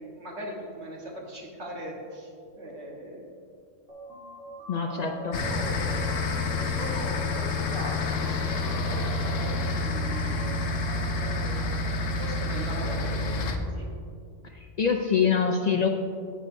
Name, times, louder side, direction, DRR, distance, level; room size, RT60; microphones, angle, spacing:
voice 1, 0.0-2.3 2.6-3.3 4.7-6.0 6.6-10.4 11.1-11.8 12.2-13.9, equal, 60° right, -2 dB, 1.5 m, -40 dB
sound 1, 3.9-11.9, right 2 dB, 75° right, 2.6 m, -45 dB
voice 2, 4.7-5.4 14.4-15.9, left 6 dB, 60° left, 3 dB, 0.4 m, -25 dB
sound 2, 5.3-13.6, left 3 dB, 80° left, 1.1 m, -28 dB
10.5 x 9.1 x 2.6 m, 2.4 s
omnidirectional pair, 1.3 m